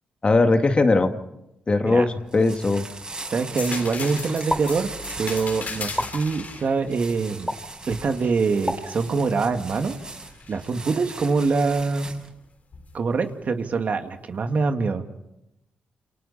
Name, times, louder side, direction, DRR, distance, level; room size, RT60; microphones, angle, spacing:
voice 1, 0.2-1.1 1.7-2.8, left 3 dB, 35° left, 6 dB, 2.1 m, -19 dB
sound 1, 2.1-12.3, right 2 dB, 25° right, 6.6 m, -39 dB
voice 2, 3.3-4.9 5.2-7.5 7.9-10.0 10.5-12.2 12.9-15.0, right 4 dB, 55° right, 6 dB, 2.1 m, -24 dB
sound 2, 3.6-9.2 9.7-10.7 12.7-12.9, left 5 dB, 55° left, 3.8 m, -38 dB
sound 3, 4.5-4.6 6.0-6.1 7.5-7.6 8.6-8.8, left 1 dB, 10° left, 3.7 m, -25 dB
28.5 x 28.5 x 4.3 m, 0.88 s
cardioid pair, 70°, 3 cm